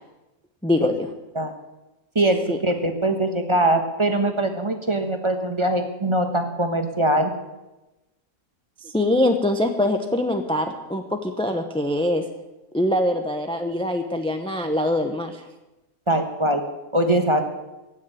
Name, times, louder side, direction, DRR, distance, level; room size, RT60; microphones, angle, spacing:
voice 1, 0.6-1.1 2.5-2.6 8.8-12.2 12.7-15.5, left 1 dB, 5° left, 5 dB, 0.7 m, -23 dB
voice 2, 2.1-7.3 16.1-16.6 16.9-17.4, right 1 dB, 20° right, 5 dB, 1.2 m, -22 dB
15.5 x 6.5 x 9.1 m, 1.0 s
omnidirectional pair, 1.5 m